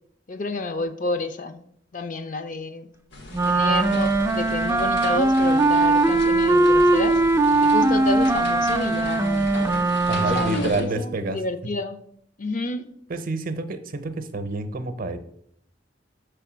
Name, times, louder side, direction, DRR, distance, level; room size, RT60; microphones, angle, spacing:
voice 1, 0.3-1.6 1.9-2.9 3.5-7.2 7.7-9.5 10.2-12.0 12.4-12.9, left 2 dB, 45° left, 10 dB, 0.5 m, -29 dB
sound 1, 3.1-10.8, left 2 dB, 90° left, 1.3 m, -37 dB
Wind instrument woodwind instrument, 3.3-10.7, right 2 dB, 15° right, 0.3 m, -20 dB
voice 2, 10.1-11.4 13.1-15.2, right 3 dB, 50° right, 10 dB, 0.6 m, -28 dB
6.4 x 3.4 x 6.0 m, 0.69 s
head